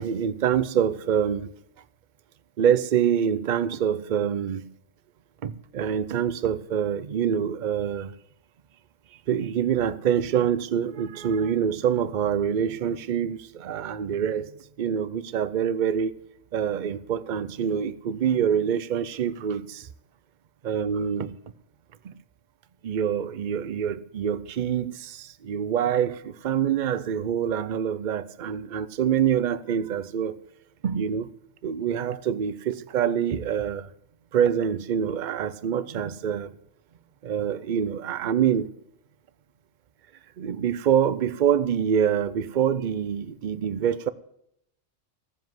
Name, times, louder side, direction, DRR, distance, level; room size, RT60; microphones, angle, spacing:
voice 1, 0.0-1.5 2.6-4.6 5.4-8.1 9.3-14.5 14.8-16.1 16.5-19.8 20.6-21.3 22.8-30.4 30.8-31.3 31.6-33.9 34.3-36.5 37.2-38.7 40.4-44.1, right 8 dB, 50° right, 0.7 m, -25 dB
15.0 x 7.4 x 7.7 m
omnidirectional pair, 1.3 m